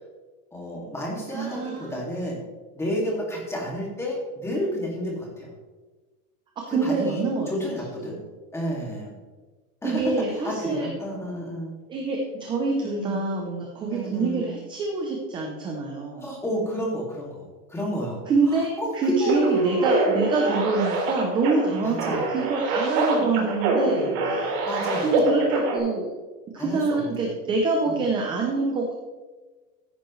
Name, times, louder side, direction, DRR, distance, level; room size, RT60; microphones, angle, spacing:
voice 1, 0.5-2.4 2.7-5.5 6.7-8.2 8.5-9.1 9.8-11.8 12.8-13.2 13.9-14.5 16.2-19.9 21.8-22.4 23.2-23.4 24.7-25.4 26.5-27.3 27.9-28.0, equal, 5° left, -2 dB, 2.2 m, -30 dB
voice 2, 1.3-2.0 6.6-7.5 8.0-8.1 9.8-10.9 11.9-16.2 18.3-24.6 25.0-26.1 26.5-28.9, right 3 dB, 10° right, 1 dB, 0.5 m, -26 dB
sound 1, 19.3-25.8, right 3 dB, 45° right, 3.4 m, -25 dB
13.5 x 10.5 x 3.1 m, 1.3 s
supercardioid pair, 170°, 44 cm